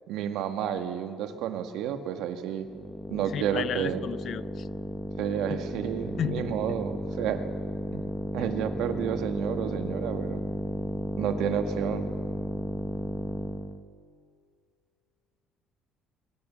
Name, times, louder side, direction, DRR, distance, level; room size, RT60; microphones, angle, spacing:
voice 1, 0.1-2.7 3.1-4.0 5.2-7.4 7.9-8.0 8.3-10.4 11.2-12.1, right 9 dB, 75° right, 7 dB, 1.9 m, -31 dB
sound 1, 2.6-13.8, equal, 10° left, 1.3 m, -34 dB
voice 2, 3.3-4.7 6.2-6.5, left 9 dB, 50° left, 18 dB, 0.5 m, -33 dB
24.0 x 23.5 x 7.2 m, 2.1 s
cardioid pair, 140°, 0 cm